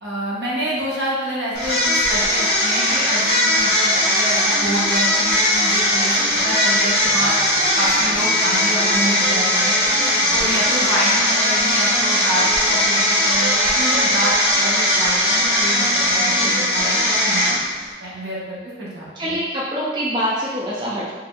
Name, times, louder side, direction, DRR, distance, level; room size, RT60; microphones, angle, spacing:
voice 1, 0.0-7.4 7.7-9.8 10.0-17.6 18.0-19.4, right 1 dB, 65° right, -7 dB, 1.1 m, -27 dB
sound 1, 1.5-17.9, left 1 dB, 60° left, 1.4 m, -19 dB
sound 2, 7.0-12.1, equal, 40° left, 1.4 m, -39 dB
voice 2, 19.2-21.1, equal, 25° right, -7 dB, 0.4 m, -25 dB
4.8 x 2.6 x 2.3 m, 1.3 s
head